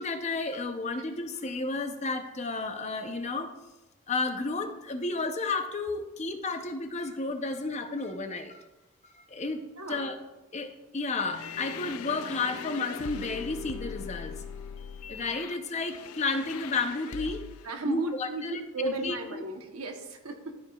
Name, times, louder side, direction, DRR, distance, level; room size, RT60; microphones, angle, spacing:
voice 1, 0.0-3.5 4.1-8.6 9.1-9.6 9.9-10.1 10.5-14.4 15.1-17.4 17.8-19.4, left 3 dB, 30° left, 6 dB, 0.6 m, -32 dB
voice 2, 9.8-10.1 17.6-20.6, right 2 dB, 85° right, 4 dB, 1.0 m, -36 dB
sound 1, 11.3-17.7, left 7 dB, 80° left, 0.4 m, -41 dB
13.0 x 4.9 x 2.3 m, 1.0 s
head